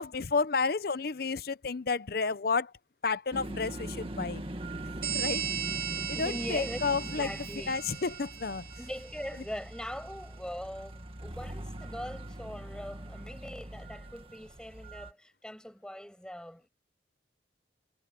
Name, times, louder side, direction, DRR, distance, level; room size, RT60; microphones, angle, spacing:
voice 1, 0.0-2.7 3.0-4.4 5.0-5.4 6.2-7.3 7.7-8.6, left 4 dB, 55° left, 0.7 m, -31 dB
sound 1, 3.3-15.1, right 1 dB, 30° right, 1.9 m, -42 dB
sound 2, 5.0-9.3, right 8 dB, 55° right, 3.2 m, -37 dB
voice 2, 6.1-7.8 8.8-16.7, equal, 5° left, 6.4 m, -41 dB
head